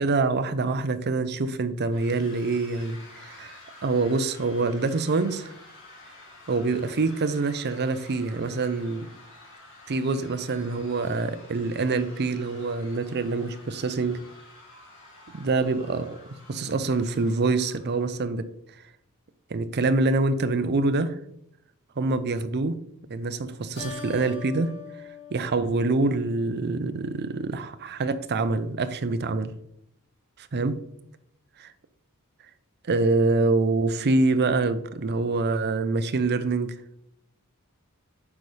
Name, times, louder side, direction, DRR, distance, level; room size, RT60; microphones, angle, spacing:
voice 1, 0.0-5.5 6.5-9.1 9.9-14.2 15.3-16.1 16.5-18.5 19.5-21.1 22.0-22.8 23.1-24.7 25.3-29.5 30.4-30.8 31.6-31.7 32.8-36.7, right 3 dB, 50° right, 11 dB, 0.5 m, -25 dB
sound 1, 1.9-18.2, left 2 dB, 60° left, 2.4 m, -49 dB
Keyboard (musical), 23.8-26.6, left 5 dB, 40° left, 2.8 m, -42 dB
8.3 x 5.4 x 3.3 m, 0.75 s
head